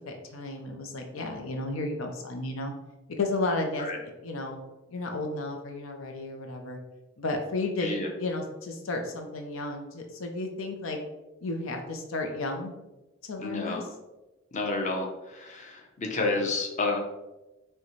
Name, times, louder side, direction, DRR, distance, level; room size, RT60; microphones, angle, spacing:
voice 1, 0.1-2.7 3.2-4.6 4.9-6.8 7.2-11.0 11.4-12.7 13.2-13.8, left 2 dB, 90° left, 3 dB, 0.6 m, -33 dB
voice 2, 13.4-13.8 14.5-17.0, left 3 dB, 40° left, 0 dB, 0.7 m, -30 dB
6.2 x 2.2 x 3.1 m, 1.0 s
head